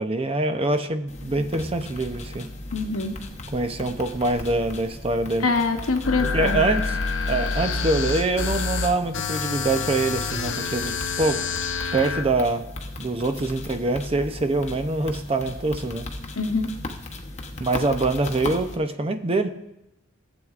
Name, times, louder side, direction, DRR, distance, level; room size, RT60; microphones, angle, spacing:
voice 1, 0.0-2.5 3.5-5.5 6.2-7.0 7.3-11.4 11.9-12.7 13.0-16.1 17.6-19.5, right 2 dB, 30° right, 8 dB, 0.6 m, -24 dB
sound 1, 1.1-18.8, left 2 dB, 35° left, 0.9 m, -37 dB
voice 2, 2.7-3.1 5.4-6.6 16.4-16.7, left 3 dB, 90° left, 6 dB, 1.0 m, -24 dB
sound 2, 6.0-12.2, left 4 dB, 60° left, 0.7 m, -27 dB
15.5 x 7.9 x 2.4 m, 0.90 s
head